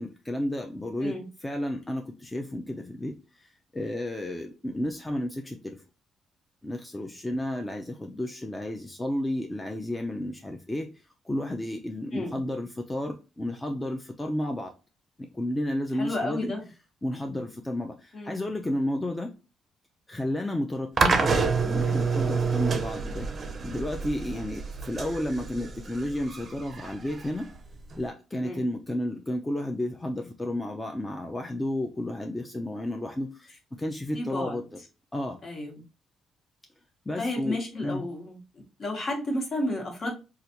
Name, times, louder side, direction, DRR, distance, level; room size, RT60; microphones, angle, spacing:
voice 1, 0.0-5.8 6.6-14.7 15.2-16.5 17.0-19.3 20.1-23.3 23.6-27.5 28.0-34.8 35.1-35.4 37.1-38.1, left 1 dB, 15° left, 3 dB, 0.4 m, -32 dB
voice 2, 16.0-16.6 18.1-18.3 28.4-28.6 34.1-34.6 35.4-35.8 37.2-38.4 38.8-40.1, left 1 dB, 50° left, 0 dB, 1.3 m, -32 dB
sound 1, 21.0-28.0, right 5 dB, 40° right, 0.5 m, -28 dB
3.3 x 2.4 x 2.8 m, 0.31 s
cardioid pair, 90°, 0 cm